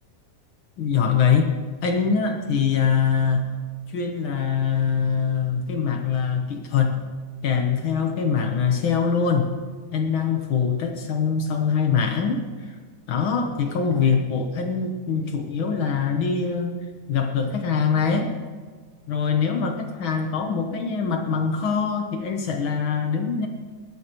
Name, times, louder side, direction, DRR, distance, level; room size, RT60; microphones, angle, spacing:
voice 1, 0.8-1.5 1.8-3.6 3.9-7.0 7.4-9.5 9.9-12.7 13.1-16.8 17.1-18.3 19.1-23.5, left 6 dB, 80° left, 4 dB, 1.1 m, -23 dB
21.5 x 12.0 x 3.0 m, 1.5 s
omnidirectional pair, 3.6 m